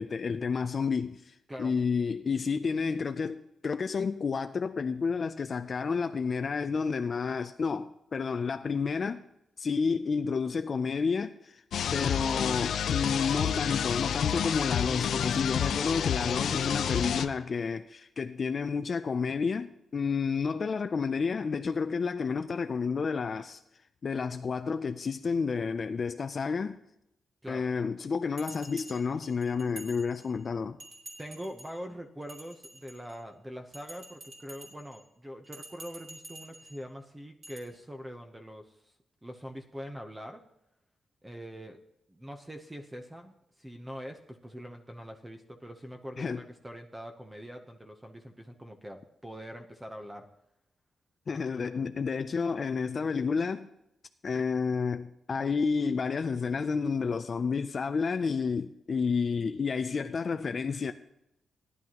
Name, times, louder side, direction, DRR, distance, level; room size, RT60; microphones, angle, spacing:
voice 1, 0.0-9.2 9.6-11.6 11.9-23.6 24.0-26.8 27.5-30.8 46.2-46.4 51.3-53.7 54.2-60.9, left 5 dB, 40° left, 0.4 m, -30 dB
sound 1, 11.7-17.3, left 8 dB, 80° left, 0.6 m, -29 dB
Bell, 28.4-30.4 30.8-31.8 32.2-33.2 33.7-35.0 35.4-36.8 37.4-37.6, right 1 dB, 35° right, 3.1 m, -48 dB
voice 2, 31.2-38.9 39.2-40.4 41.2-41.8 42.1-50.3, equal, 10° right, 0.8 m, -43 dB
17.0 x 11.0 x 2.9 m
wide cardioid pair, 165°, 0 cm